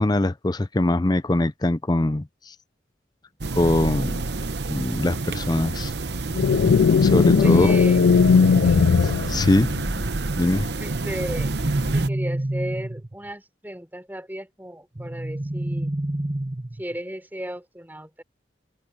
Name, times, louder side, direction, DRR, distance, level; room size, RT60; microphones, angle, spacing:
voice 1, 0.0-2.5 3.5-4.2 4.7-5.9 7.0-7.8 9.0-9.7 10.4-10.7, left 1 dB, 20° left, 0.5 m, -22 dB
sound 1, 3.4-12.1, right 3 dB, 60° right, 0.9 m, -28 dB
sound 2, 6.4-10.0, left 5 dB, 70° left, 0.4 m, -18 dB
voice 2, 7.3-8.0 8.6-8.9 10.8-11.5 11.9-16.0 16.8-18.2, equal, 10° right, 4.2 m, -35 dB
sound 3, 7.6-9.6 11.3-13.3 15.0-17.0, right 1 dB, 25° right, 1.1 m, -29 dB
head